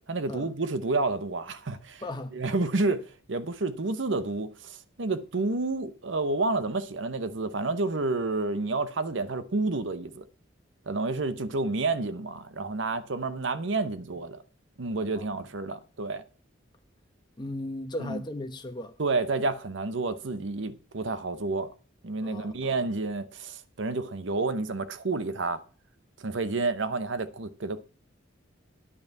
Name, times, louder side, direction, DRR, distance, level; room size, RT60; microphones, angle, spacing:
voice 1, 0.1-2.0 2.3-10.2 10.9-14.4 14.8-16.2 18.0-18.2 19.0-21.7 22.0-25.6 26.2-27.8, right 3 dB, 70° right, 0.9 m, -30 dB
voice 2, 2.0-2.3 15.1-15.4 17.4-18.9 22.2-22.9, left 1 dB, 20° left, 0.9 m, -37 dB
9.7 x 5.4 x 8.3 m
head